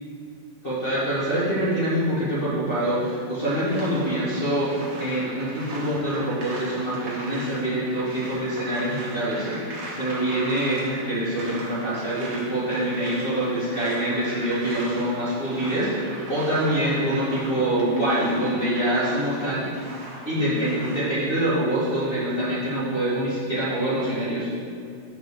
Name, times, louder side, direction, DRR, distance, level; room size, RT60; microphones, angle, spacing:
voice 1, 0.6-19.6 20.2-24.5, right 1 dB, 30° left, -12 dB, 1.0 m, -25 dB
sound 1, 3.4-21.0, right 1 dB, 60° right, 2.5 m, -39 dB
6.1 x 5.3 x 6.6 m, 2.3 s
omnidirectional pair, 3.9 m